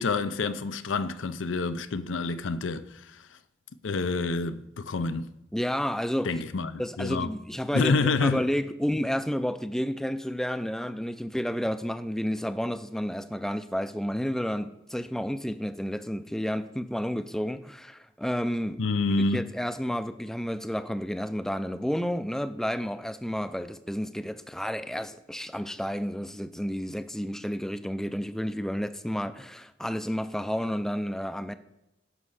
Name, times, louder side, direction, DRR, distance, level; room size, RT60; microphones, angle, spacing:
voice 1, 0.0-3.2 3.8-5.3 6.2-7.3 7.7-8.4 18.8-19.4, left 3 dB, 90° left, 0.6 m, -28 dB
voice 2, 5.5-6.4 6.8-19.0 19.3-31.5, equal, ahead, 0.4 m, -31 dB
11.0 x 5.3 x 6.4 m
head